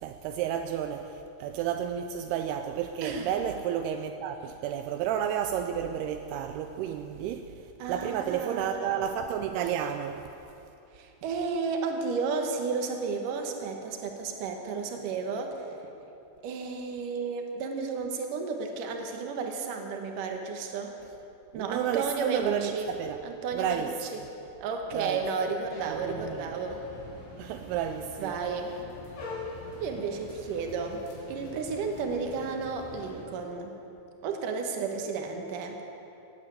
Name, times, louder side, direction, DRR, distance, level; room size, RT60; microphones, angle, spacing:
voice 1, 0.0-7.5 7.9-10.2 21.5-23.2 23.5-23.9 24.9-25.2 25.9-26.5 27.4-28.4, right 9 dB, 85° right, 2.6 m, -31 dB
voice 2, 3.0-3.4 7.8-9.1 10.9-15.6 16.4-21.0 21.5-22.9 23.2-24.2 24.6-26.8 28.2-28.8 29.8-33.8 34.2-35.8, right 4 dB, 60° right, 2.7 m, -33 dB
sound 1, 25.7-33.2, left 3 dB, 90° left, 4.7 m, -44 dB
18.5 x 8.5 x 8.4 m
omnidirectional pair, 4.6 m